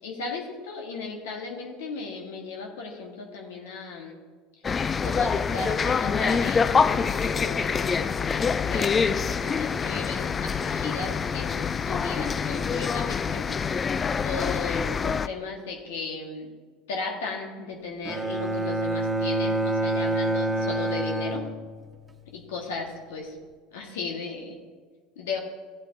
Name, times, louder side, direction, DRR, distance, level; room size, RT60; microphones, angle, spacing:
voice 1, 0.0-4.2 5.0-13.4 14.2-16.5 16.9-21.5 22.3-23.3 23.7-24.6 25.1-25.4, left 4 dB, 85° left, 0 dB, 1.5 m, -36 dB
sound 1, 4.6-15.3, left 6 dB, 30° left, 0.3 m, -26 dB
Bowed string instrument, 18.1-22.1, right 2 dB, 20° right, 1.3 m, -27 dB
14.5 x 8.3 x 2.7 m, 1.5 s
hypercardioid pair, 90°, 0 cm